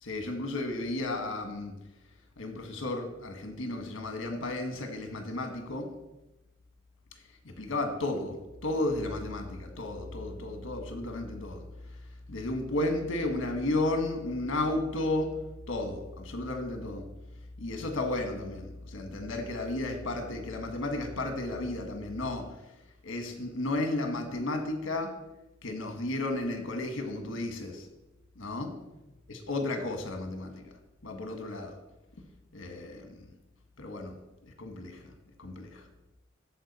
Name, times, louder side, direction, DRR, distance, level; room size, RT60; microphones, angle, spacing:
voice 1, 0.0-1.7 2.4-5.9 7.4-11.6 12.3-15.4 15.7-17.1 17.6-22.5 23.0-25.1 25.6-27.9 28.4-28.7 29.3-30.7 31.0-31.7 32.5-33.1 33.8-34.1 34.6-35.0 35.4-35.8, left 2 dB, 80° left, 5 dB, 1.3 m, -33 dB
13.5 x 4.6 x 4.2 m, 0.96 s
head